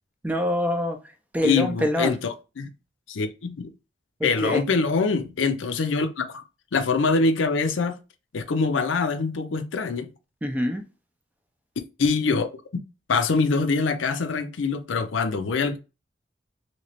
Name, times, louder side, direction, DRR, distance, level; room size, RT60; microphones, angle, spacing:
voice 1, 0.2-1.0 1.3-2.2 4.2-4.6 10.4-10.8, left 1 dB, 10° right, 0.4 m, -25 dB
voice 2, 1.4-2.7 3.1-3.7 4.2-6.4 6.7-8.0 8.3-10.1 12.0-12.5 13.1-15.8, left 4 dB, 90° left, 0.5 m, -24 dB
3.0 x 2.8 x 2.8 m
head